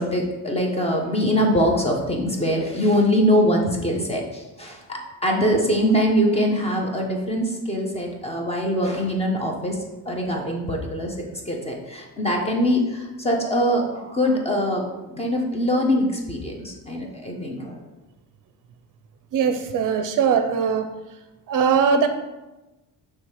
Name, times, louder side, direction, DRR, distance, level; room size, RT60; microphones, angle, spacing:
voice 1, 0.0-9.8 10.1-11.1 11.5-14.8 15.1-17.8, equal, 15° left, 0 dB, 0.7 m, -23 dB
voice 2, 19.3-20.9 21.5-22.1, right 6 dB, 55° right, 8 dB, 0.5 m, -20 dB
6.2 x 3.3 x 4.8 m, 1.1 s
cardioid pair, 165°, 38 cm